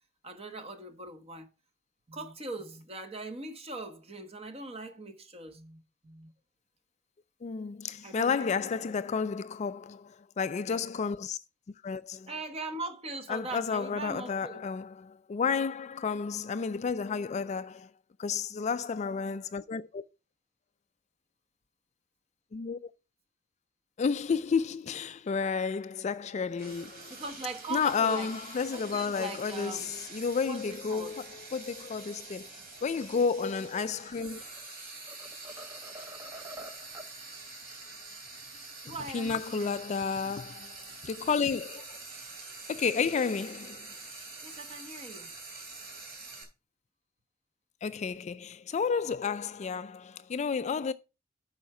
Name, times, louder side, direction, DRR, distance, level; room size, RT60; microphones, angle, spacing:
voice 1, 0.2-1.5 2.1-6.3 8.0-9.0 12.3-14.6 27.1-28.3 28.7-29.9 30.4-31.1 38.8-39.7 44.4-45.3, right 2 dB, 30° right, 1.2 m, -41 dB
voice 2, 7.4-11.4 11.8-12.3 13.3-17.9 18.2-20.0 22.5-22.9 24.0-27.1 27.7-34.4 39.1-42.0 42.7-43.9 47.8-50.9, left 5 dB, 35° left, 0.3 m, -31 dB
Frying (food), 26.6-46.4, right 3 dB, 50° right, 3.3 m, -46 dB
sound 1, 34.3-34.7 35.1-37.2, right 1 dB, 15° right, 0.7 m, -47 dB
8.5 x 5.7 x 4.8 m
head